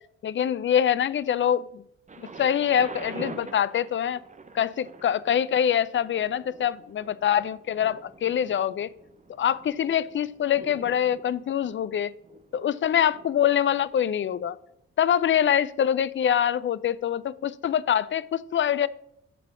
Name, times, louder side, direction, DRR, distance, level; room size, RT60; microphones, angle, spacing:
voice 1, 0.2-1.8 2.4-4.2 4.5-8.9 9.4-12.1 12.5-14.6 15.0-18.9, left 9 dB, 35° left, 17 dB, 0.4 m, -24 dB
Thunder, 2.1-13.9 14.7-14.8, right 4 dB, 20° right, 0.7 m, -46 dB
8.3 x 4.0 x 6.6 m, 0.75 s
hypercardioid pair, 45°, 36 cm